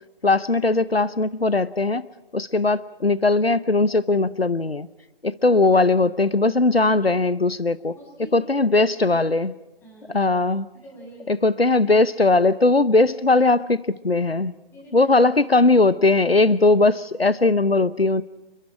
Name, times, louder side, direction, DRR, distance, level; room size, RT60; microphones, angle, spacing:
voice 1, 0.2-2.1 2.3-4.9 5.2-7.9 8.3-9.5 10.1-10.7 11.3-14.5 14.9-18.2, left 3 dB, 90° left, 18 dB, 0.9 m, -19 dB
voice 2, 7.9-8.7 9.8-10.3 10.8-11.3 14.7-15.1, right 2 dB, 5° left, -2 dB, 6.1 m, -45 dB
29.5 x 22.0 x 4.9 m, 1.0 s
figure-of-eight pair, 145°, 30 cm